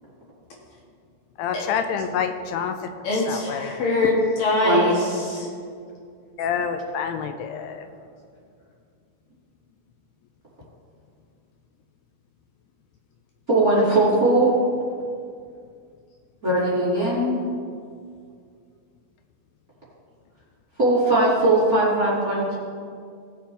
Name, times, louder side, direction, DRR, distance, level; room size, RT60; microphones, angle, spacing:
voice 1, 1.4-2.8 3.3-3.8 6.4-7.9, left 7 dB, 85° left, 7 dB, 2.6 m, -27 dB
voice 2, 3.0-5.5 7.5-7.6, left 2 dB, 60° left, -4 dB, 3.4 m, -23 dB
voice 3, 13.5-14.5 16.4-17.4 20.8-22.6, right 2 dB, 25° right, -7 dB, 2.6 m, -19 dB
18.0 x 7.7 x 3.4 m, 2.2 s
omnidirectional pair, 4.6 m